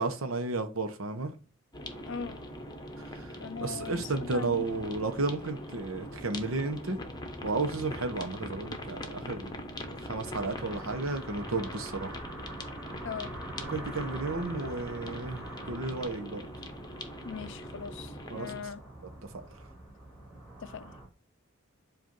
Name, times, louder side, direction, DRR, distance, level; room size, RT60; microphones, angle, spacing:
voice 1, 0.0-1.3 3.0-7.0 7.4-9.5 9.9-12.2 13.7-16.5 18.3-18.7 19.3-19.4, right 3 dB, 75° right, 0.8 m, -33 dB
sound 1, 1.7-18.6, left 1 dB, 20° left, 0.9 m, -43 dB
sound 2, 1.9-21.1, right 1 dB, 5° right, 2.7 m, -46 dB
voice 2, 2.1-2.5 3.4-4.6 13.0-13.4 17.2-18.8 20.6-20.9, left 6 dB, 65° left, 0.4 m, -40 dB
7.7 x 2.6 x 5.3 m
head